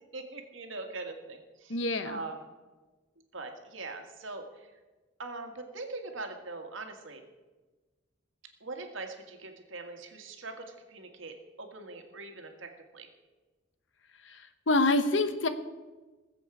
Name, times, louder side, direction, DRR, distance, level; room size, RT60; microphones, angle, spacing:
voice 1, 0.0-1.8 2.0-2.4 3.3-4.4 5.2-7.2 8.6-13.1, right 3 dB, 80° right, 4 dB, 1.8 m, -42 dB
voice 2, 1.7-2.2 14.2-15.5, left 2 dB, 70° left, 10 dB, 1.0 m, -27 dB
20.0 x 7.7 x 4.8 m, 1.2 s
head